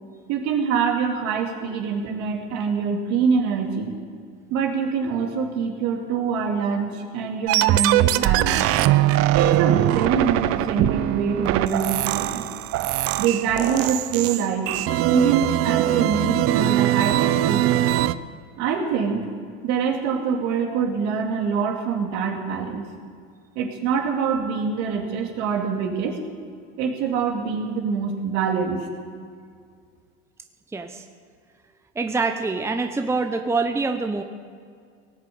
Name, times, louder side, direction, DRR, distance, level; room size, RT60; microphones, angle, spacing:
voice 1, 0.3-4.0 4.5-8.6 9.3-12.5 13.2-14.7 15.0-17.9 18.6-19.2 19.6-22.9 23.5-26.2 26.8-28.8, right 6 dB, 65° right, 1 dB, 2.7 m, -24 dB
sound 1, 7.5-18.1, right 14 dB, 50° right, 0.6 m, -21 dB
voice 2, 30.7-31.0 31.9-34.2, right 3 dB, 10° right, 6 dB, 0.8 m, -25 dB
18.0 x 7.6 x 8.5 m, 2.2 s
supercardioid pair, 105°, 30 cm